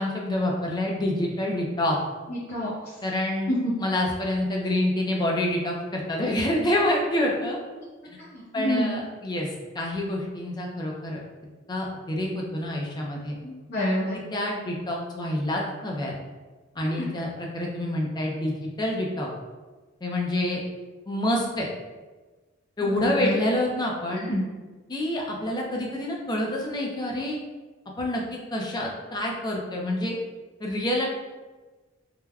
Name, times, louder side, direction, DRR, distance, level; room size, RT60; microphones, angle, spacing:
voice 1, 0.0-2.0 3.0-3.5 3.8-7.6 8.5-9.5 9.7-11.2 11.7-13.4 14.1-16.1 16.8-19.3 20.0-20.6 21.1-21.7 22.8-24.3 24.9-27.4 28.0-30.2 30.6-31.1, left 1 dB, 20° left, -1 dB, 0.4 m, -27 dB
voice 2, 2.3-2.9 3.5-3.7 8.3-9.0 13.4-14.2 16.8-17.1 22.8-23.4 24.1-24.4, equal, 50° left, -10 dB, 0.7 m, -28 dB
3.3 x 2.2 x 2.2 m, 1.3 s
head